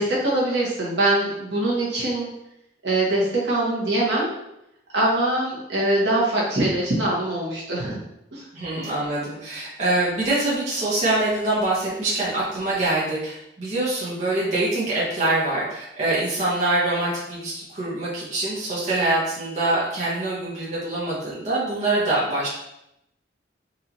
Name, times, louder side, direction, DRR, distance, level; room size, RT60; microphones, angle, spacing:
voice 1, 0.0-2.3 2.8-4.3 4.9-8.0 8.3-8.5, right 1 dB, 70° right, -5 dB, 1.2 m, -23 dB
voice 2, 8.5-22.5, right 2 dB, 40° right, -7 dB, 0.9 m, -24 dB
4.1 x 2.7 x 2.9 m, 0.83 s
head